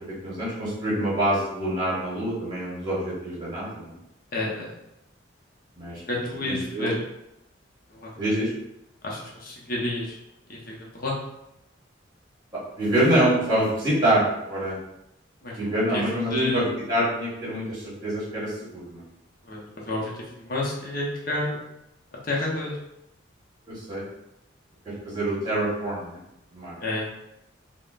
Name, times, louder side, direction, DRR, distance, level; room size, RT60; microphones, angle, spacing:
voice 1, 0.0-3.9 5.7-6.0 6.4-6.9 8.2-8.5 12.8-14.8 15.6-19.0 23.7-24.0 24.8-26.2 26.5-26.7, right 1 dB, 20° right, -8 dB, 1.2 m, -26 dB
voice 2, 4.3-4.7 5.9-7.0 7.9-8.1 9.0-10.2 10.5-11.2 15.4-15.6 15.9-16.0 16.3-16.7 19.4-21.6 22.3-22.8 26.8-27.1, left 2 dB, 50° left, -4 dB, 0.7 m, -30 dB
3.5 x 2.1 x 2.4 m, 0.85 s
head